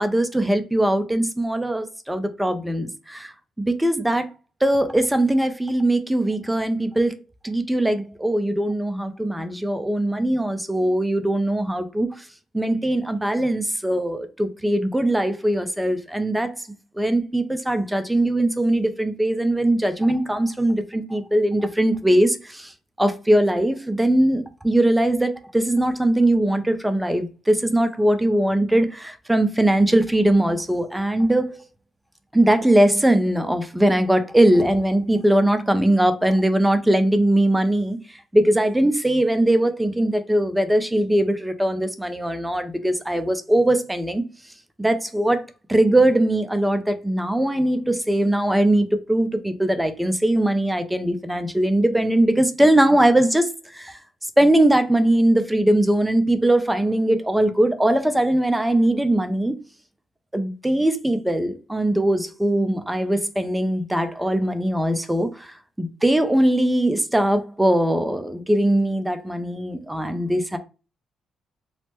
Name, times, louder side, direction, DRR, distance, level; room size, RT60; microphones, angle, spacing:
voice 1, 0.0-3.3 3.6-4.3 4.6-7.1 7.4-12.2 12.5-16.5 17.0-22.7 23.0-31.6 32.3-38.0 38.3-44.2 44.8-45.4 45.7-54.0 54.4-59.5 60.3-70.6, right 1 dB, 5° right, 0.4 m, -20 dB
3.2 x 2.0 x 2.9 m
cardioid pair, 90°, 0 cm